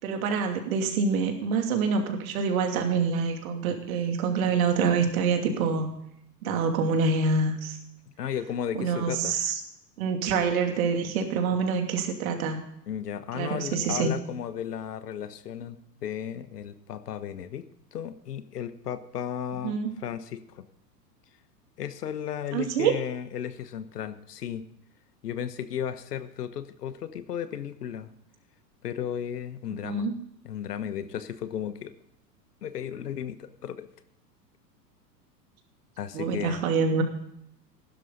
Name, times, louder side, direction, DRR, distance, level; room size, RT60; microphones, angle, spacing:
voice 1, 0.0-5.9 6.4-7.8 8.8-9.6 10.0-12.6 13.3-14.1 19.6-19.9 22.5-22.9 29.8-30.1 36.1-37.0, right 5 dB, 55° right, 4 dB, 2.8 m, -26 dB
voice 2, 8.2-9.3 12.9-17.6 17.9-19.8 20.0-20.7 21.8-24.6 25.2-28.1 28.8-30.1 30.4-31.9 32.6-33.9 36.0-36.6, left 9 dB, 65° left, 12 dB, 1.3 m, -34 dB
16.0 x 12.0 x 4.0 m, 0.75 s
figure-of-eight pair, 95°, 50 cm